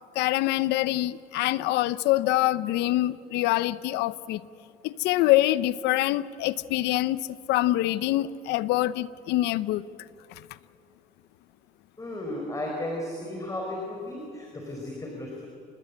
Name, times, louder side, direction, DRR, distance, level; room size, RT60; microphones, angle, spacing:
voice 1, 0.2-4.4 4.8-9.8, left 16 dB, 90° left, 16 dB, 0.8 m, -25 dB
voice 2, 12.0-15.5, left 1 dB, 20° left, -1 dB, 5.0 m, -34 dB
29.0 x 20.0 x 8.5 m, 2.4 s
cardioid pair, 110°, 17 cm